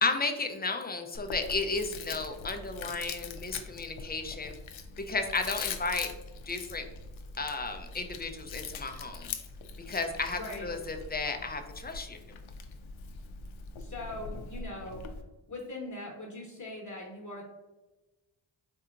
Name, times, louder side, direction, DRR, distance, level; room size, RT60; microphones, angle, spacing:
voice 1, 0.0-4.5 5.0-6.1 6.5-6.8 7.4-9.3 9.9-12.2, left 3 dB, 20° left, 5 dB, 0.5 m, -33 dB
Chewing mastication, 1.1-15.2, left 5 dB, 75° left, 0.6 m, -42 dB
voice 2, 10.4-10.7 13.8-15.0 15.5-17.4, left 2 dB, 40° left, 0 dB, 1.0 m, -41 dB
4.5 x 2.7 x 2.4 m, 1.1 s
cardioid pair, 50°, 48 cm